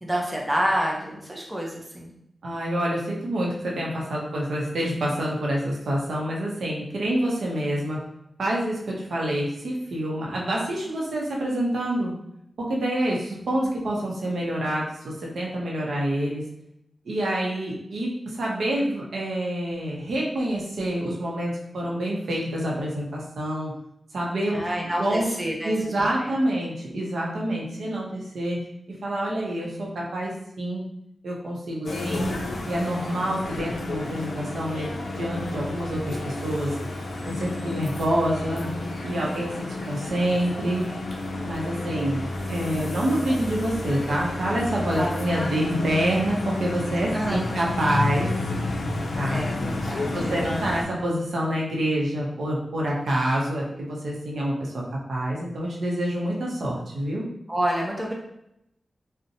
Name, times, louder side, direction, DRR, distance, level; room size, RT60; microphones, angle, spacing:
voice 1, 0.0-2.1 24.5-26.3 39.2-39.4 39.8-39.9 45.0-45.1 47.1-47.5 49.3-50.6 57.5-58.1, right 1 dB, 10° right, -2 dB, 0.4 m, -28 dB
voice 2, 2.4-8.0 8.4-12.1 12.6-16.4 17.1-23.7 24.1-24.6 25.0-25.3 25.6-28.6 29.0-30.8 31.2-32.3 32.7-36.8 37.2-38.7 39.0-40.9 41.4-42.2 42.5-48.3 49.2-49.5 50.1-54.8 55.1-57.3, right 1 dB, 80° right, -3 dB, 0.6 m, -27 dB
sound 1, 31.9-50.8, left 2 dB, 80° left, 0.4 m, -31 dB
2.7 x 2.0 x 2.6 m, 0.80 s
wide cardioid pair, 175°, 0 cm